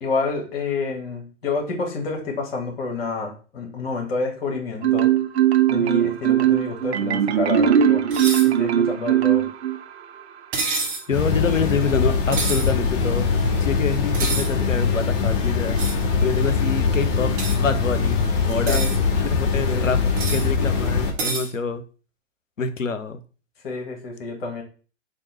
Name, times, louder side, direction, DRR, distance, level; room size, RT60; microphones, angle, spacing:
voice 1, 0.0-5.1 5.7-8.0 8.4-9.4 18.7-18.9 19.7-19.9 23.6-24.6, left 3 dB, 50° left, 1 dB, 1.5 m, -28 dB
Marimba xylophone, 4.8-10.0, right 10 dB, 60° right, 0.5 m, -19 dB
sound 1, 8.1-8.5 10.5-11.1 12.3-12.7 14.1-14.5 15.8-16.0 17.4-17.6 18.5-19.0 20.2-20.5 21.2-21.5, right 3 dB, 25° right, 0.8 m, -27 dB
voice 2, 11.1-15.8 16.2-17.3 17.6-18.8 19.2-20.0 20.3-21.8 22.6-23.2, left 5 dB, 90° left, 10 dB, 0.6 m, -26 dB
sound 2, 11.1-21.1, left 5 dB, 35° left, 1.0 m, -22 dB
3.6 x 2.6 x 4.2 m, 0.38 s
figure-of-eight pair, 115°, 37 cm